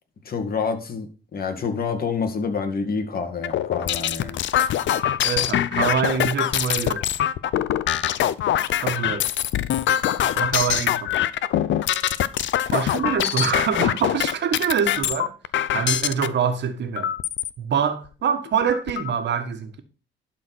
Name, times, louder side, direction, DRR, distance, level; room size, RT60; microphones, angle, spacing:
voice 1, 0.3-4.4, left 5 dB, 50° left, 2.2 m, -27 dB
sound 1, 3.4-16.3 17.0-17.5 18.1-18.2 18.5-19.1, left 11 dB, 70° left, 0.7 m, -23 dB
voice 2, 5.2-7.1 8.8-9.3 10.3-11.1 12.7-15.3 15.7-17.1 17.6-19.8, right 7 dB, 60° right, 1.7 m, -25 dB
11.5 x 4.6 x 6.2 m
cardioid pair, 90°, 20 cm